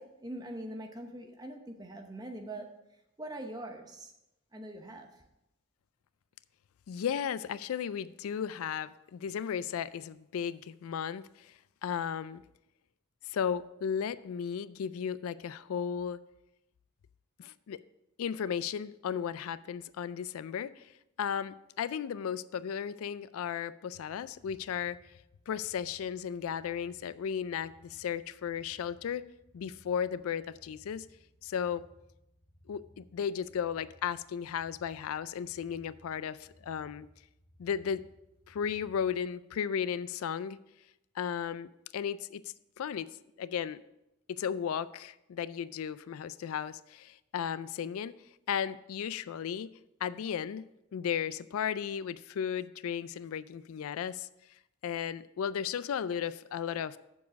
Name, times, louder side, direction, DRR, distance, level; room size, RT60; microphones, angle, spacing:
voice 1, 0.0-2.7 3.2-4.1 4.5-5.1, right 1 dB, 20° right, 3 dB, 0.9 m, -42 dB
voice 2, 6.9-11.5 11.8-12.4 13.2-16.2 17.4-17.8 18.2-20.9 21.2-25.0 25.5-29.2 29.5-31.1 31.4-31.8 32.7-37.1 37.6-38.1 38.5-40.6 41.2-42.4 42.8-43.1 43.4-43.8 44.3-48.1 48.5-49.7 50.0-54.3 54.8-57.0, left 8 dB, 75° left, 17 dB, 0.3 m, -35 dB
sound 1, 24.3-39.2, left 1 dB, 30° left, 1.4 m, -62 dB
7.2 x 7.1 x 5.2 m, 0.88 s
head